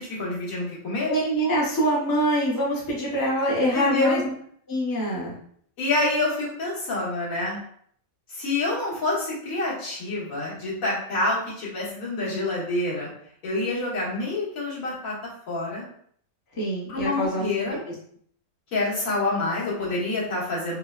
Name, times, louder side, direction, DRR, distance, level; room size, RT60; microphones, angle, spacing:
voice 1, 0.0-1.1 3.7-4.2 5.8-7.6 8.3-13.1 13.4-15.1 15.5-15.8 16.9-17.8 18.7-20.8, left 2 dB, 65° left, -7 dB, 1.7 m, -27 dB
voice 2, 1.1-4.3 4.7-5.4 16.6-17.5 17.9-18.0, right 1 dB, 25° left, -4 dB, 0.5 m, -24 dB
4.7 x 2.2 x 2.3 m, 0.63 s
omnidirectional pair, 1.6 m